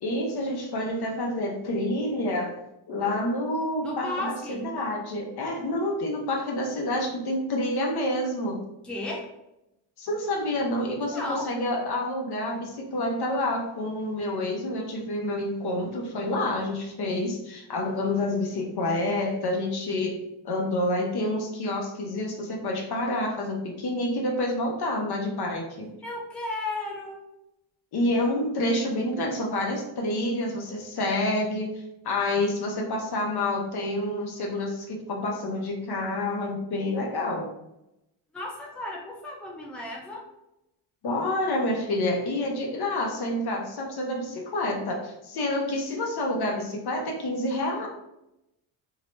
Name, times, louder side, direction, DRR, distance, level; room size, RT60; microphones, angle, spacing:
voice 1, 0.0-2.5 2.9-8.6 10.0-20.2 20.4-25.9 27.9-31.7 32.0-37.5 41.0-47.9, left 1 dB, 50° left, 0 dB, 0.8 m, -28 dB
voice 2, 3.8-4.7 8.8-9.3 11.1-11.5 26.0-27.2 38.3-40.2, left 2 dB, ahead, -2 dB, 0.6 m, -34 dB
2.7 x 2.0 x 3.1 m, 0.87 s
supercardioid pair, 75°, 49 cm